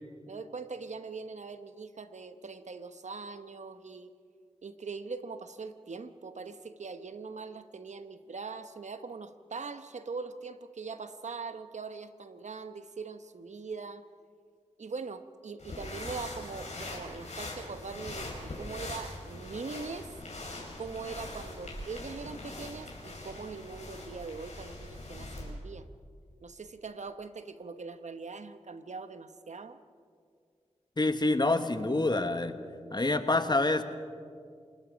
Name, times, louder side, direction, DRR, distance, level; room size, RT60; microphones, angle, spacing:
voice 1, 0.3-4.1 4.6-14.0 14.8-20.2 20.8-25.9 26.4-29.8, right 4 dB, 70° right, 10 dB, 1.0 m, -42 dB
sound 1, 15.6-25.5, left 2 dB, 65° left, 5.4 m, -42 dB
voice 2, 31.0-32.6 32.9-33.8, left 2 dB, 35° left, 9 dB, 1.4 m, -27 dB
28.5 x 20.0 x 5.2 m, 2.2 s
wide cardioid pair, 55°, 12 cm